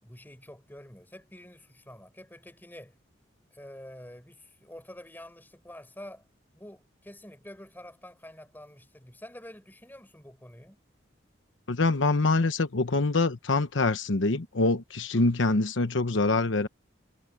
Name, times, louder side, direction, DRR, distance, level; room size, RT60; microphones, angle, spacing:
voice 1, 0.0-3.0 3.5-6.2 6.5-10.8 15.1-15.3, left 1 dB, 10° left, 5.0 m, -47 dB
voice 2, 11.7-16.7, left 3 dB, 75° left, 1.0 m, -25 dB
head